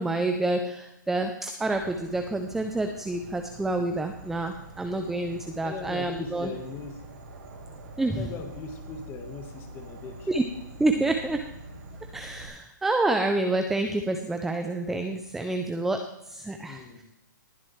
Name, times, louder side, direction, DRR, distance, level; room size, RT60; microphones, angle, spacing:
voice 1, 0.0-6.5 8.0-8.3 10.3-10.4 10.8-11.5 12.1-17.0, right 2 dB, 5° right, 6 dB, 0.4 m, -28 dB
Insect / Frog, 1.6-12.5, right 2 dB, 75° right, 3.9 m, -45 dB
voice 2, 5.6-7.0 8.1-10.3 16.6-17.0, left 5 dB, 20° left, 7 dB, 1.3 m, -39 dB
20.0 x 7.6 x 3.1 m, 0.84 s
hypercardioid pair, 160°, 11 cm